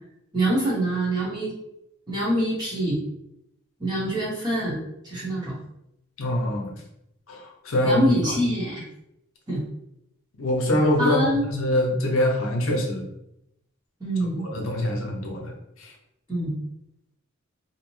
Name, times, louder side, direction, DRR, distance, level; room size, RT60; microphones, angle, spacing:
voice 1, 0.3-1.5 2.1-3.0 3.8-5.6 7.8-8.8 9.5-9.6 11.0-11.5 14.0-14.5 16.3-16.6, right 1 dB, 20° right, -7 dB, 0.8 m, -25 dB
voice 2, 6.2-6.7 7.3-8.0 10.4-13.1 14.4-15.5 15.8-15.9, left 1 dB, 75° left, 1 dB, 0.6 m, -24 dB
2.7 x 2.0 x 3.0 m, 0.81 s
head